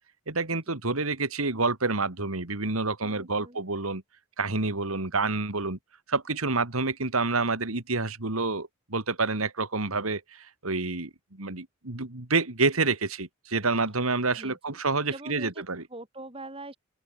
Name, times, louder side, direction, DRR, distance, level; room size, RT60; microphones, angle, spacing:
voice 1, 0.3-4.0 4.4-5.8 6.1-15.8, right 3 dB, 85° right, 2.7 m, -28 dB
voice 2, 3.0-3.6 14.4-14.8 15.1-15.6 15.9-16.8, right 2 dB, 25° right, 6.8 m, -43 dB
open air
head